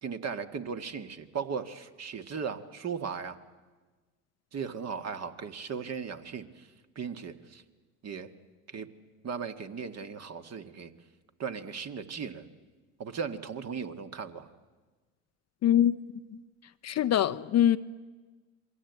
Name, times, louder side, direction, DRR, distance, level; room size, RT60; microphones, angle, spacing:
voice 1, 0.0-3.4 4.5-6.7 7.0-7.6 8.0-8.3 8.7-8.9 9.2-10.9 11.4-12.5 13.0-14.5, right 6 dB, 35° right, 1.9 m, -37 dB
voice 2, 15.6-16.0 16.8-17.8, left 11 dB, 35° left, 0.7 m, -23 dB
27.0 x 22.5 x 8.3 m
hypercardioid pair, 80°, 45 cm